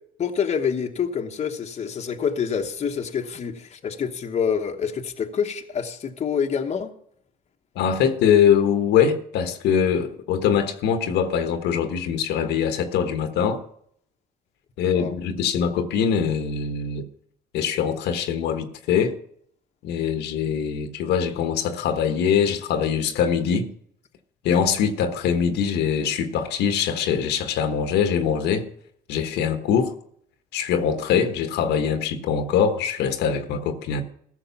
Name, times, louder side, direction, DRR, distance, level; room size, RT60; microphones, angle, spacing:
voice 1, 0.2-6.9 14.9-15.1, left 7 dB, 40° left, 1.1 m, -27 dB
voice 2, 7.7-13.6 14.8-17.1 17.5-19.2 19.8-23.7 24.4-28.7 29.1-29.9 30.5-34.0, left 7 dB, 80° left, 1.2 m, -23 dB
14.5 x 6.5 x 5.8 m
cardioid pair, 110°, 17 cm